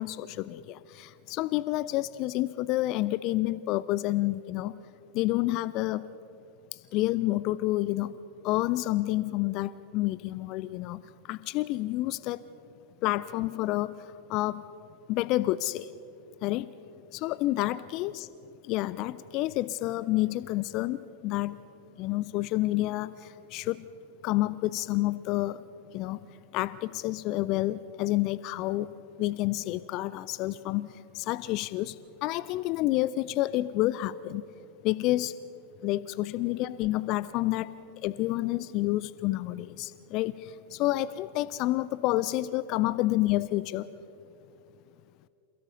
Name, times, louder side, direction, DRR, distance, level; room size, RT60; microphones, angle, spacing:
voice 1, 0.0-4.7 5.1-6.0 6.9-8.1 8.4-11.0 11.3-12.4 13.0-13.9 14.3-14.6 15.1-15.9 16.4-16.7 17.1-18.3 18.7-21.6 22.0-23.8 24.2-25.6 25.9-26.2 26.5-28.9 29.2-30.9 31.1-31.9 32.2-34.4 34.8-35.3 35.8-37.7 38.0-43.9, left 17 dB, 40° left, 17 dB, 0.4 m, -29 dB
27.5 x 16.5 x 6.8 m, 2.7 s
figure-of-eight pair, 90°, 0 cm